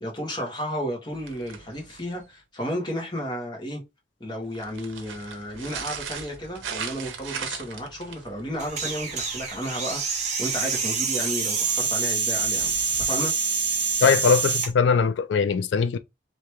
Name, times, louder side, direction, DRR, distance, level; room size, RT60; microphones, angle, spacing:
voice 1, 0.0-3.8 4.2-12.7 13.0-13.3, equal, 25° left, 1.3 m, -33 dB
sound 1, 1.1-2.3 4.4-10.0 12.3-13.1, right 6 dB, 85° right, 0.7 m, -39 dB
sound 2, 8.6-14.7, right 5 dB, 35° right, 1.0 m, -26 dB
voice 2, 14.0-16.0, left 5 dB, 70° left, 0.3 m, -21 dB
3.1 x 2.9 x 3.3 m
head